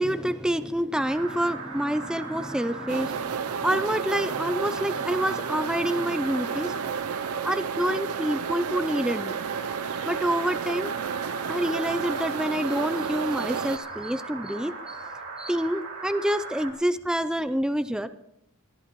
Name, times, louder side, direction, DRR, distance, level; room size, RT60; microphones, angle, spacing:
voice 1, 0.0-6.9 7.4-9.4 10.1-10.9 11.5-15.0 15.4-18.1, equal, 5° right, 11 dB, 0.4 m, -27 dB
sound 1, 1.0-16.7, right 4 dB, 65° right, 2.6 m, -39 dB
sound 2, 2.9-13.8, right 7 dB, 85° right, 0.6 m, -32 dB
22.0 x 13.5 x 3.0 m, 0.80 s
head